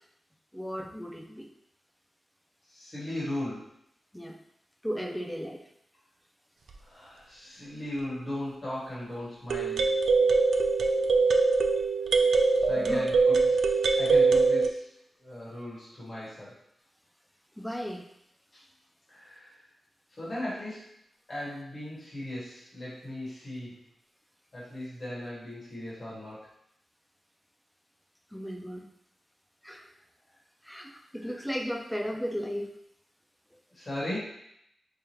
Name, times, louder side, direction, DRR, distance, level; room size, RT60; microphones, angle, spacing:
voice 1, 0.5-1.5 4.1-4.4 4.8-5.6 10.4-10.5 12.8-13.0 17.6-18.0 28.3-28.9 29.6-29.9 30.6-32.7, equal, ahead, 2 dB, 0.3 m, -35 dB
voice 2, 2.6-3.7 6.8-9.9 12.2-12.3 12.7-14.9 15.2-16.5 18.5-18.6 19.1-19.6 20.1-20.9 21.3-23.7 24.5-26.5 31.2-31.4 33.7-34.2, left 1 dB, 30° left, -9 dB, 1.5 m, -38 dB
sound 1, 6.7-6.8 9.5-14.7, right 4 dB, 85° right, 0.3 m, -23 dB
4.8 x 2.3 x 3.0 m, 0.75 s
wide cardioid pair, 180°, 0 cm